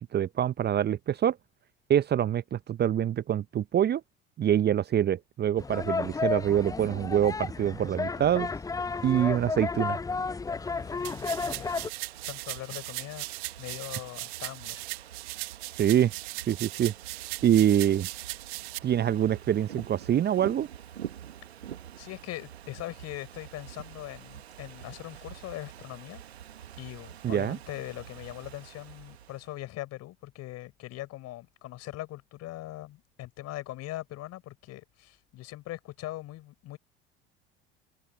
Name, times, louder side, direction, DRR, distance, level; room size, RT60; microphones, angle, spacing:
voice 1, 0.1-1.4 1.9-4.0 4.4-8.5 9.0-10.0 15.8-16.1 16.5-16.9 17.4-18.1 18.8-20.7 27.2-27.6, right 10 dB, 30° right, 0.8 m, -25 dB
sound 1, 5.6-11.9, left 4 dB, 10° left, 0.6 m, -32 dB
Ocean / Fireworks, 10.3-29.6, right 10 dB, 80° right, 1.8 m, -47 dB
voice 2, 10.5-13.3 13.6-14.8 22.0-26.2 26.8-36.8, left 16 dB, 50° left, 5.8 m, -41 dB
sound 2, 11.0-18.8, right 26 dB, 60° right, 1.7 m, -38 dB
figure-of-eight pair, 65°, 32 cm